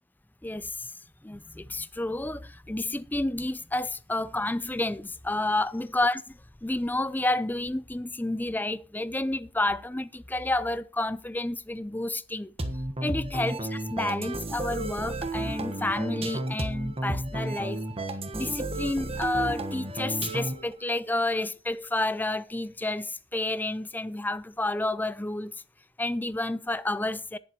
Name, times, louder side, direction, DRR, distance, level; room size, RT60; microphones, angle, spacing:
voice 1, 0.4-0.9 1.2-6.2 6.6-12.5 13.0-17.8 18.3-25.5 26.0-27.4, left 2 dB, 10° left, 0.5 m, -30 dB
sound 1, 12.6-20.7, right 1 dB, 30° right, 1.3 m, -32 dB
18.5 x 7.3 x 3.0 m
head